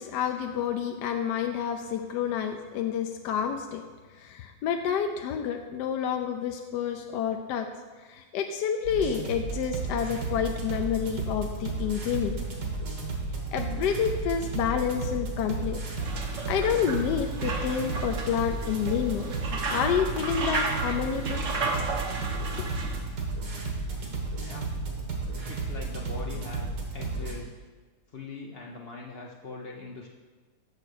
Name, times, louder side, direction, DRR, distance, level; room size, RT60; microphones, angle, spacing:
voice 1, 0.0-3.8 4.2-7.7 8.1-12.4 13.5-15.8 16.5-19.3 19.7-21.4 22.6-22.7, left 8 dB, 75° left, 5 dB, 1.1 m, -29 dB
sound 1, 8.8-27.3, right 3 dB, 65° right, 2.1 m, -33 dB
sound 2, 16.0-23.0, right 3 dB, 50° right, 1.1 m, -33 dB
voice 2, 24.4-24.7 25.4-27.5 28.1-30.1, left 3 dB, 90° left, -1 dB, 0.5 m, -41 dB
6.8 x 6.6 x 6.4 m, 1.3 s
omnidirectional pair, 2.1 m